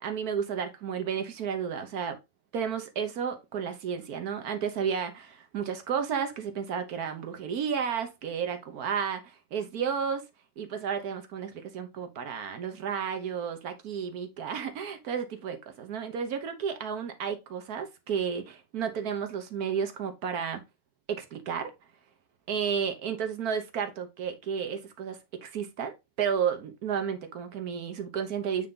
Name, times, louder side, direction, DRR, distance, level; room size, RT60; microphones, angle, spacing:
voice 1, 0.0-2.2 2.5-10.2 10.6-20.6 21.1-21.7 22.5-28.7, right 7 dB, 80° right, 1.4 m, -32 dB
8.3 x 3.7 x 3.9 m
omnidirectional pair, 1.6 m